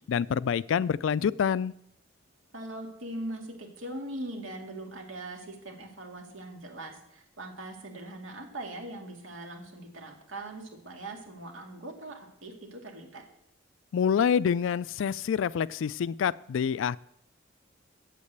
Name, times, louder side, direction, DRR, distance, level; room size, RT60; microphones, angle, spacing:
voice 1, 0.1-1.7 13.9-17.0, left 7 dB, 75° left, 20 dB, 0.3 m, -27 dB
voice 2, 2.5-13.2, right 1 dB, 85° right, 2 dB, 2.3 m, -41 dB
8.5 x 7.4 x 8.0 m, 0.76 s
head